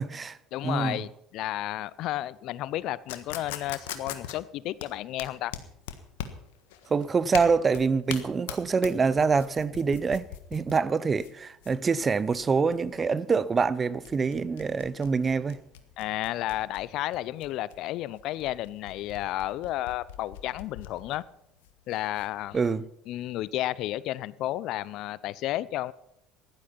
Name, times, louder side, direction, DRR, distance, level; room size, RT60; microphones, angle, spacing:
voice 1, 0.0-0.4 0.6-1.0 6.9-15.6 22.5-22.8, right 5 dB, 30° right, 0.8 m, -25 dB
voice 2, 0.5-5.6 16.0-21.2 21.9-22.6 23.1-25.9, left 14 dB, 60° left, 0.5 m, -32 dB
sound 1, 3.1-22.7, left 11 dB, 80° left, 1.4 m, -42 dB
15.0 x 12.0 x 5.8 m
hypercardioid pair, 75°, 0 cm